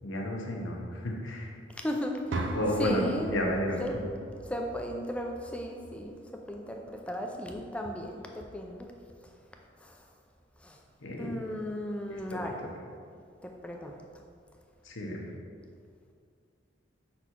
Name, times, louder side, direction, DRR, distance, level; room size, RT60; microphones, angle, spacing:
voice 1, 0.0-1.5 2.5-3.0 3.3-4.0 11.0-11.4 12.1-12.2 14.8-15.2, equal, 85° left, 0 dB, 0.9 m, -32 dB
voice 2, 1.7-2.5 2.8-3.4 3.8-4.0 4.4-8.9 9.2-9.3 9.8-10.1 10.6-10.8 11.2-12.6 13.4-14.0, equal, 5° left, 2 dB, 0.4 m, -36 dB
sound 1, 2.3-6.3, right 2 dB, 70° right, 0.5 m, -40 dB
5.5 x 4.2 x 4.5 m, 2.2 s
head